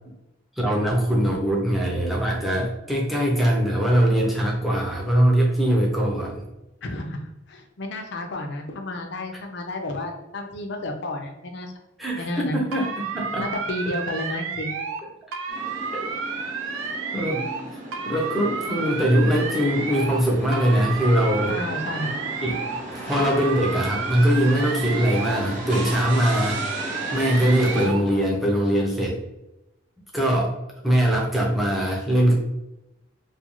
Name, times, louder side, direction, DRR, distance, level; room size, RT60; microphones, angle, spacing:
voice 1, 0.6-6.5 12.0-13.5 13.9-14.0 15.9-16.1 17.1-17.5 18.0-21.5 22.4-22.6 22.9-26.6 27.1-29.2 30.1-30.5 30.8-32.3, equal, ahead, -2 dB, 0.5 m, -22 dB
voice 2, 6.8-7.2 7.5-11.7 12.1-12.6 13.4-14.7 21.5-22.2, left 1 dB, 60° left, 3 dB, 0.5 m, -31 dB
sound 1, 12.7-15.0 15.3-17.6 17.9-20.2 20.5-22.8 23.1-25.4 25.7-28.0, right 5 dB, 85° right, 0.3 m, -31 dB
sound 2, 15.5-27.9, right 1 dB, 40° right, 0.7 m, -36 dB
2.4 x 2.2 x 2.9 m, 0.93 s
head